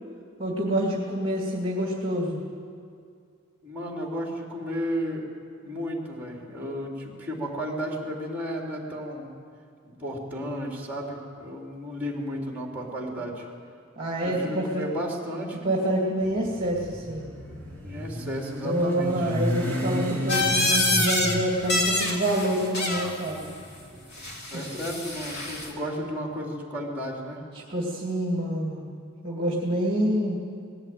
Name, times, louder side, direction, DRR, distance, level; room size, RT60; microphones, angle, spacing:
voice 1, 0.4-2.4 14.0-14.8 15.6-17.2 18.6-23.5 24.5-24.6 27.5-30.4, right 1 dB, 25° right, -3 dB, 2.4 m, -27 dB
voice 2, 3.6-5.3 5.6-9.3 10.0-13.5 14.2-15.7 17.8-19.3 24.5-27.5, equal, 10° right, -1 dB, 3.5 m, -33 dB
Motorcycle, 16.2-24.4, equal, 10° left, 3.3 m, -33 dB
sound 1, 20.3-21.3 21.6-23.1 24.2-25.7, left 2 dB, 50° left, 2.9 m, -26 dB
20.5 x 16.0 x 9.2 m, 2.3 s
head